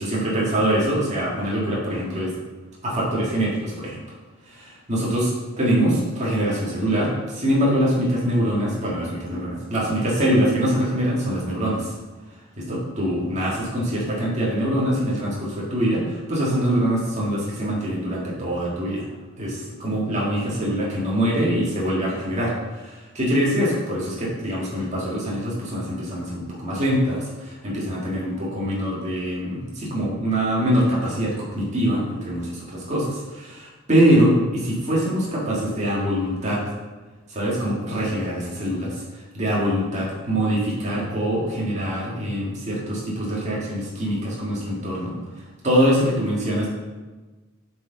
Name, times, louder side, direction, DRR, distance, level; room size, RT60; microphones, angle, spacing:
voice 1, 0.0-2.3 2.8-4.0 4.4-11.9 12.6-19.1 19.4-36.6 37.3-45.2 45.6-46.7, equal, 35° right, -6 dB, 1.8 m, -24 dB
7.7 x 4.7 x 3.9 m, 1.2 s
head